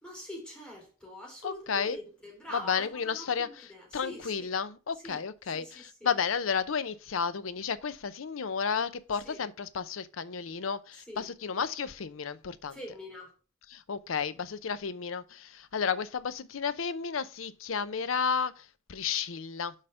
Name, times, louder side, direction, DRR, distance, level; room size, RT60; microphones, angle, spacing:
voice 1, 0.0-4.5 5.0-5.2 5.5-6.1 9.2-9.4 11.1-11.3 12.7-13.3, left 1 dB, 5° left, 3.7 m, -44 dB
voice 2, 1.4-2.0 2.5-3.7 3.9-12.8 13.7-19.7, left 6 dB, 90° left, 0.6 m, -32 dB
6.5 x 5.0 x 5.6 m
head